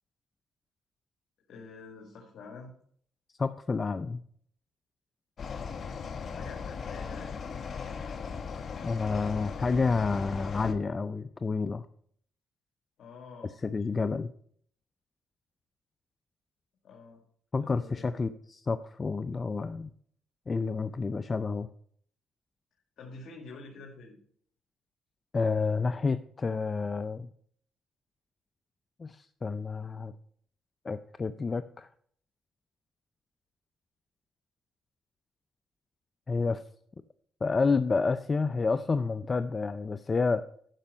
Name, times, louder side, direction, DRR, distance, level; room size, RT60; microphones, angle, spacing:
voice 1, 1.5-2.7 6.2-7.4 13.0-13.5 16.8-17.2 17.6-18.2 23.0-24.2, left 3 dB, 65° left, 0 dB, 1.9 m, -47 dB
voice 2, 3.4-4.2 8.8-11.9 13.6-14.3 17.5-19.9 20.5-21.7 25.3-27.3 29.0-30.1 30.8-31.9 36.3-36.6 37.4-40.4, left 4 dB, 30° left, 12 dB, 0.4 m, -29 dB
sound 1, 5.4-10.7, left 6 dB, 50° left, 0.9 m, -38 dB
11.5 x 5.3 x 5.2 m, 0.63 s
cardioid pair, 90°, 0 cm